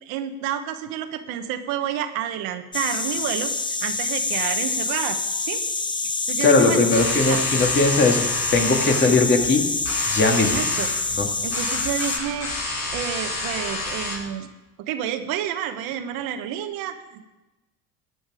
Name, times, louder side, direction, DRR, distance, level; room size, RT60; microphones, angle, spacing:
voice 1, 0.0-3.5 3.8-5.6 6.3-6.9 7.2-7.4 10.4-10.9 11.4-12.5 12.9-14.5 14.8-17.3, right 10 dB, 80° right, 8 dB, 1.2 m, -29 dB
sound 1, 2.7-12.2, left 3 dB, 15° left, 0.7 m, -26 dB
voice 2, 6.4-9.7 10.1-10.6 11.2-11.3, left 3 dB, 30° left, 3 dB, 2.1 m, -19 dB
sound 2, 6.9-14.2, left 2 dB, 50° left, 5.7 m, -30 dB
14.0 x 9.6 x 4.9 m, 1.1 s
cardioid pair, 100°, 34 cm